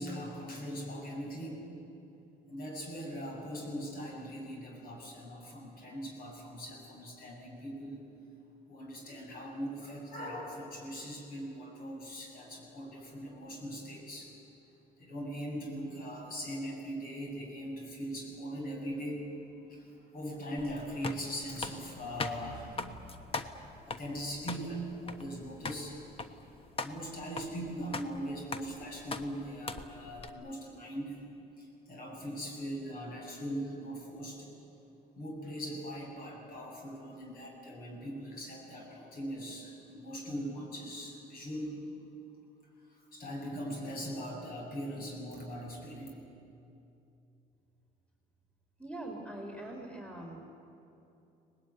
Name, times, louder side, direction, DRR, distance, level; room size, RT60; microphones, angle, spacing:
voice 1, 0.0-1.7 2.5-8.0 8.7-14.3 15.0-19.2 19.7-23.5 23.8-26.0 26.8-31.2 31.6-34.5 35.2-41.7 43.1-46.1, equal, 60° left, 0 dB, 7.6 m, -40 dB
sound 1, 20.6-30.3, left 3 dB, 35° left, 1.2 m, -41 dB
voice 2, 48.8-50.4, right 1 dB, 5° left, 1 dB, 3.6 m, -42 dB
24.0 x 19.5 x 9.7 m, 2.8 s
cardioid pair, 110°, 17 cm